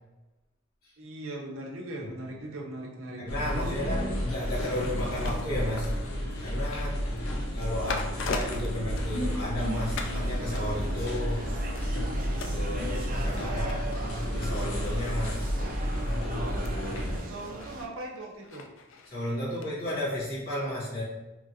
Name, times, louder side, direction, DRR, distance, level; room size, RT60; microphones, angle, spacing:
voice 1, 1.0-3.2 3.5-4.2 17.2-18.7, right 1 dB, 70° right, -1 dB, 0.7 m, -39 dB
voice 2, 3.2-5.9 6.4-7.0 7.5-11.4 12.5-13.9 14.2-15.5 19.1-21.0, left 1 dB, 45° left, -8 dB, 1.1 m, -33 dB
sound 1, 3.3-17.2, equal, 85° left, 0.7 m, -31 dB
sound 2, 4.5-9.6 10.0-10.2 10.6-19.7 20.0-20.1, left 3 dB, 60° left, 0.3 m, -41 dB
sound 3, 9.6-17.9, right 2 dB, 40° right, 0.3 m, -40 dB
2.9 x 2.5 x 2.7 m, 1.0 s
head